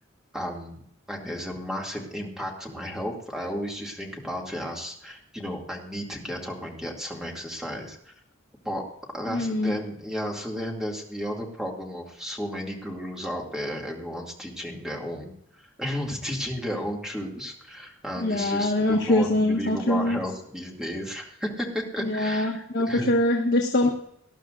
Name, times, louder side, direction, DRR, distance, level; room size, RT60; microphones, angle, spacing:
voice 1, 0.3-0.8 1.1-8.1 8.6-8.8 9.1-15.3 15.6-23.1, equal, 5° right, -1 dB, 2.4 m, -33 dB
voice 2, 9.3-9.7 18.2-20.2 22.0-23.9, left 1 dB, 55° left, 1 dB, 1.3 m, -23 dB
19.5 x 12.0 x 2.5 m, 0.71 s
head